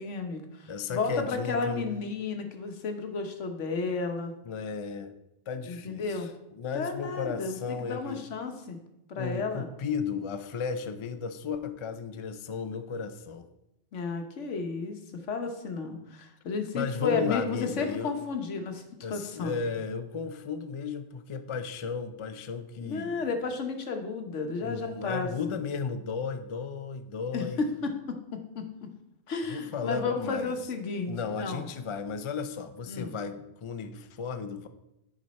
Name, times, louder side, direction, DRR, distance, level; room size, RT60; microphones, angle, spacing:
voice 1, 0.0-4.3 5.7-6.3 6.7-8.8 9.1-9.7 13.9-18.8 19.1-19.5 22.8-25.6 27.3-28.2 28.5-28.7 29.3-31.6 32.9-33.2, left 4 dB, 80° left, 5 dB, 1.3 m, -33 dB
voice 2, 0.7-1.9 4.4-5.1 5.5-6.2 6.5-8.2 9.1-13.5 16.7-18.1 19.0-23.2 24.6-27.6 29.5-30.5 31.1-34.7, left 5 dB, 45° left, 9 dB, 0.4 m, -34 dB
9.3 x 5.1 x 4.1 m, 0.88 s
omnidirectional pair, 1.2 m